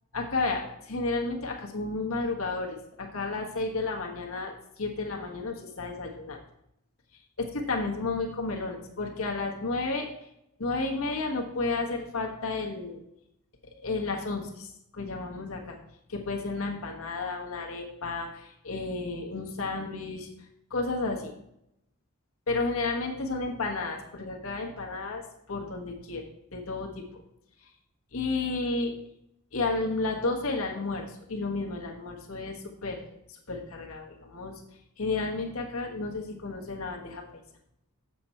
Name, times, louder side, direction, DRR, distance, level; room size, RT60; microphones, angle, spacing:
voice 1, 0.1-6.4 7.1-10.3 10.6-13.0 13.8-15.8 16.1-20.3 20.7-21.3 22.5-25.2 25.5-26.2 26.5-27.2 27.6-27.7 28.1-28.9 29.5-34.6 35.0-37.4, left 3 dB, 70° left, 0 dB, 1.4 m, -32 dB
7.7 x 7.4 x 4.4 m, 0.80 s
head